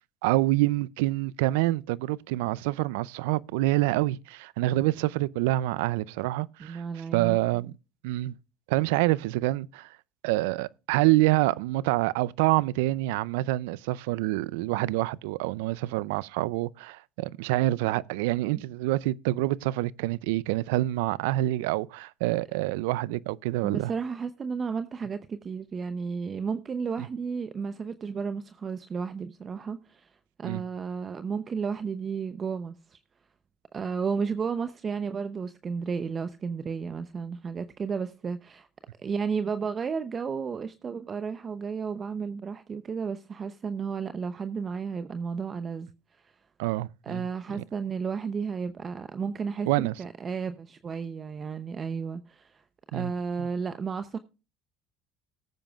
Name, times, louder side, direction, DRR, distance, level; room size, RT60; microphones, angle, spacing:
voice 1, 0.2-6.8 7.1-7.7 8.0-8.3 8.7-9.9 10.2-23.9 30.4-30.6 46.6-47.2 49.7-49.9 52.9-53.1 53.4-53.5, right 18 dB, 80° right, 0.4 m, -26 dB
voice 2, 6.6-7.4 23.6-30.1 30.4-33.0 33.7-38.7 39.0-45.9 47.0-52.6 52.9-54.2, right 5 dB, 35° right, 0.7 m, -33 dB
18.5 x 8.9 x 2.4 m
supercardioid pair, 80°, 0 cm